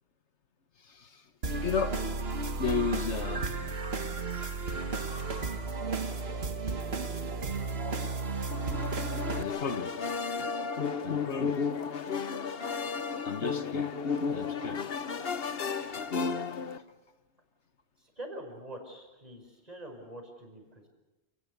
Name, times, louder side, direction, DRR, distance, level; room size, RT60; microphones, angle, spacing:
voice 1, 0.8-1.2 1.6-2.0 2.6-3.5 5.9-6.2 7.6-7.7 9.4-9.9 10.4-11.6 13.2-13.9 14.3-14.9 15.4-15.7, left 5 dB, 80° left, 9 dB, 1.7 m, -34 dB
sound 1, 1.4-9.4, right 3 dB, 60° right, 1.8 m, -33 dB
sound 2, 8.5-16.8, left 5 dB, 60° left, 1.2 m, -33 dB
voice 2, 18.0-20.9, right 1 dB, 35° right, 3 dB, 5.6 m, -45 dB
29.0 x 19.0 x 6.8 m, 1.0 s
omnidirectional pair, 1.2 m